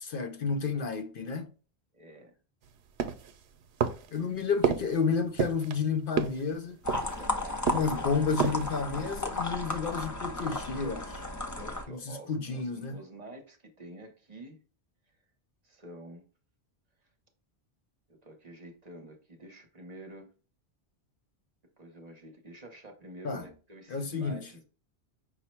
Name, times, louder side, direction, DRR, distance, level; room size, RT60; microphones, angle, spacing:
voice 1, 0.0-1.5 4.1-6.8 7.7-11.2 11.9-13.0 23.2-23.4 23.9-24.5, left 5 dB, 65° left, 0.7 m, -31 dB
voice 2, 1.9-2.3 7.1-8.2 11.4-14.6 15.6-16.2 18.1-20.3 21.8-24.6, right 1 dB, 40° right, 0.9 m, -48 dB
sound 1, 3.0-3.4 3.8-4.2 4.6-5.0 5.4-5.8 6.2-6.5 6.9-7.3 7.7-8.0 8.3-8.7 9.1-9.2, right 7 dB, 90° right, 0.9 m, -30 dB
sound 2, 6.8-11.8, left 2 dB, 20° left, 0.5 m, -34 dB
5.5 x 2.1 x 4.3 m
omnidirectional pair, 1.1 m